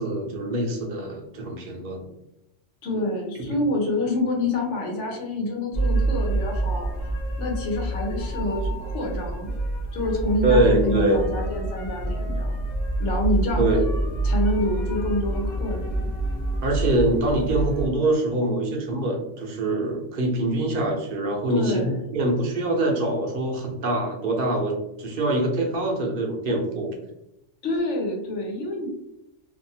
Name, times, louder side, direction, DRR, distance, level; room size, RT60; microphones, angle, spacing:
voice 1, 0.0-2.1 3.4-3.6 10.4-11.3 13.6-14.2 16.6-21.8 22.1-26.9, right 2 dB, 55° right, 1 dB, 0.8 m, -24 dB
voice 2, 2.8-9.5 9.9-12.6 13.0-13.6 14.2-16.1 21.5-22.0 27.6-28.9, left 1 dB, 85° left, 1 dB, 1.1 m, -27 dB
sound 1, 5.7-17.9, right 1 dB, 45° left, 0.6 m, -27 dB
2.6 x 2.5 x 2.7 m, 0.84 s
omnidirectional pair, 1.2 m